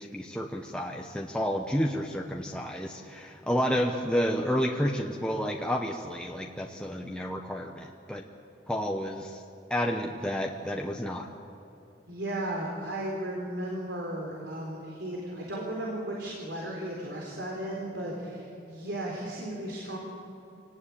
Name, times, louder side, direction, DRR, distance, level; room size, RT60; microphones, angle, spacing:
voice 1, 0.0-8.2 8.7-9.4 9.7-11.3, equal, 5° left, 0 dB, 1.0 m, -30 dB
voice 2, 12.1-20.0, right 1 dB, 70° right, -2 dB, 4.2 m, -35 dB
26.5 x 19.0 x 8.7 m, 2.7 s
head